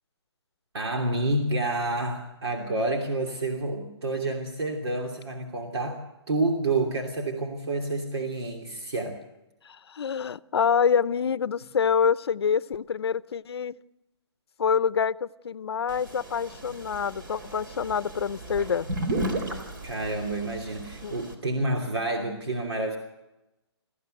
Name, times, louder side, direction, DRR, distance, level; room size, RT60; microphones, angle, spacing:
voice 1, 0.7-9.2 19.8-23.0, right 2 dB, 70° right, 2 dB, 3.1 m, -29 dB
voice 2, 9.6-13.8 14.6-18.9 21.0-21.1, left 7 dB, 65° left, 18 dB, 0.7 m, -26 dB
sound 1, 15.9-21.3, right 1 dB, 45° right, 4.0 m, -35 dB
22.5 x 15.0 x 7.9 m, 0.96 s
hypercardioid pair, 170°, 14 cm